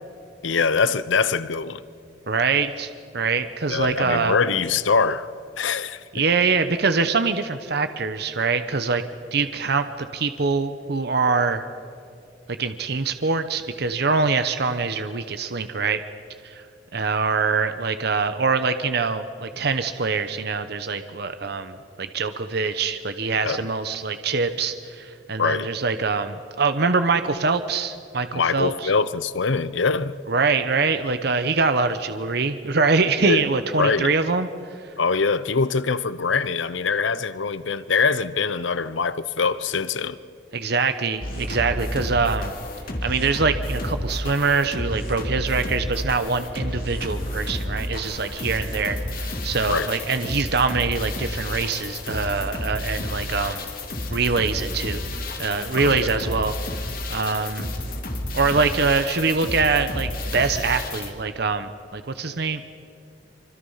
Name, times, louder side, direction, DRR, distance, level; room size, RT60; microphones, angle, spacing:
voice 1, 0.4-1.8 3.7-6.0 23.4-23.7 25.4-25.7 28.3-30.1 33.2-33.5 33.8-34.1 35.0-40.2 49.7-49.9 55.8-56.1, left 5 dB, 85° left, 0.8 m, -23 dB
voice 2, 2.3-4.4 6.1-9.0 9.3-11.6 12.6-16.0 16.4-16.6 16.9-28.9 30.3-34.5 40.5-42.5 43.0-53.7 54.1-55.0 55.4-56.5 57.1-57.7 58.3-62.6, right 4 dB, 60° right, 0.9 m, -24 dB
sound 1, 41.2-61.1, left 1 dB, 50° left, 2.8 m, -31 dB
25.5 x 25.0 x 5.7 m
head